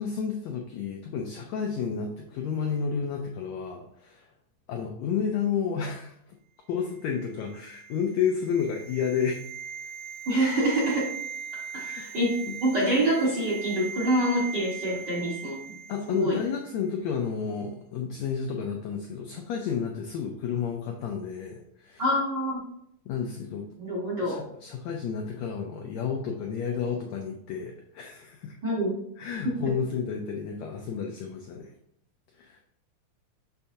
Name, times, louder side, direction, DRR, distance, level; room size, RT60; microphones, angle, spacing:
voice 1, 0.0-4.3 4.7-6.1 6.7-9.4 11.7-12.0 12.5-12.6 15.9-22.0 23.0-23.6 24.2-28.6 29.2-31.7 32.4-32.6, left 6 dB, 85° left, 2 dB, 1.5 m, -31 dB
sound 1, 7.0-16.3 16.5-16.7, right 7 dB, 80° right, 1.5 m, -40 dB
voice 2, 10.3-11.1 11.9-15.7 16.1-16.4 22.0-22.6 23.8-24.4 28.6-29.0 29.4-29.6, right 1 dB, 50° right, -6 dB, 1.4 m, -26 dB
6.9 x 5.6 x 2.7 m, 0.73 s
omnidirectional pair, 3.9 m